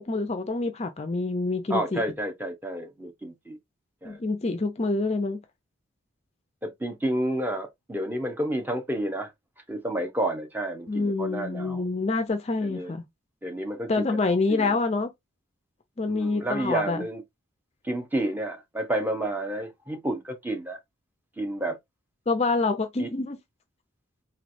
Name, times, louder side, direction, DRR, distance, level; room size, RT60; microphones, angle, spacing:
voice 1, 0.0-2.0 4.0-5.4 10.9-13.0 13.9-15.1 16.0-17.0 22.3-23.4, left 3 dB, 30° left, 0.4 m, -26 dB
voice 2, 1.7-3.6 4.0-4.2 6.6-9.3 9.7-11.8 12.6-12.9 13.4-14.8 16.1-17.2 17.8-20.8 21.4-21.8 23.0-23.1, right 1 dB, 10° right, 0.7 m, -30 dB
4.0 x 3.1 x 2.5 m
head